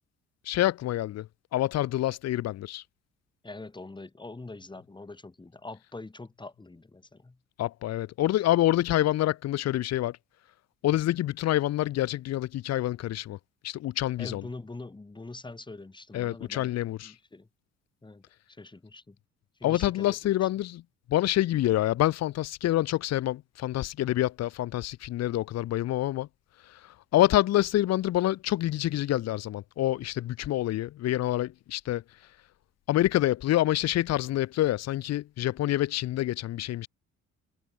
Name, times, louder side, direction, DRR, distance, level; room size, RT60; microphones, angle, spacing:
voice 1, 0.5-2.8 7.6-10.2 10.8-13.4 13.6-14.5 16.1-17.1 19.6-20.8 21.1-26.3 26.7-32.0 32.9-36.9, left 14 dB, 55° left, 0.6 m, -27 dB
voice 2, 3.4-7.4 14.2-16.7 17.0-17.5 18.0-18.2 18.6-19.2 19.6-20.3, left 3 dB, 15° left, 2.3 m, -43 dB
cardioid pair, 105°, 31 cm